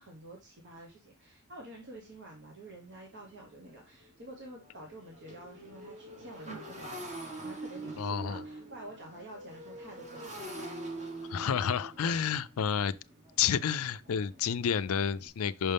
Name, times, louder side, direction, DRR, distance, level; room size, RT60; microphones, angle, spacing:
voice 1, 0.0-10.3 12.0-12.2, right 1 dB, 55° right, 1.2 m, -49 dB
Motorcycle, 2.7-2.8 3.2-3.4 3.7-15.3, right 2 dB, 35° right, 1.4 m, -45 dB
voice 2, 8.0-8.4 11.3-12.9 13.4-15.7, left 7 dB, 80° left, 0.4 m, -30 dB
5.8 x 5.4 x 3.4 m
head